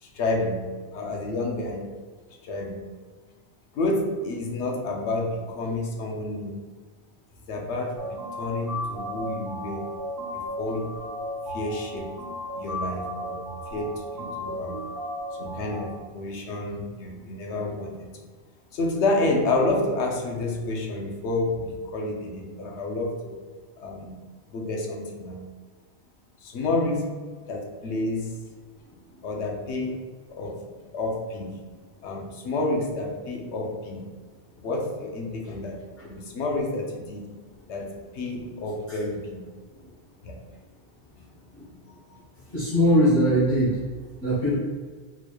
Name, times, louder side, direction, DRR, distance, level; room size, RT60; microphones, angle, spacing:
voice 1, 0.0-1.9 2.4-2.9 3.7-6.6 7.5-9.9 10.3-10.9 11.5-12.1 12.5-13.4 13.7-14.8 15.4-18.1 18.7-23.4 23.8-24.1 24.5-25.4 26.4-27.1 27.4-28.3 29.2-30.0 30.3-30.6 30.9-31.5 32.0-34.0 34.6-37.3 37.7-39.4 40.2-40.3, left 2 dB, 85° left, 0 dB, 1.0 m, -29 dB
sound 1, 8.0-16.0, equal, 55° right, 1.4 m, -34 dB
voice 2, 42.5-43.8 44.2-44.5, equal, 65° left, -10 dB, 1.2 m, -20 dB
4.1 x 3.0 x 2.2 m, 1.5 s
omnidirectional pair, 1.1 m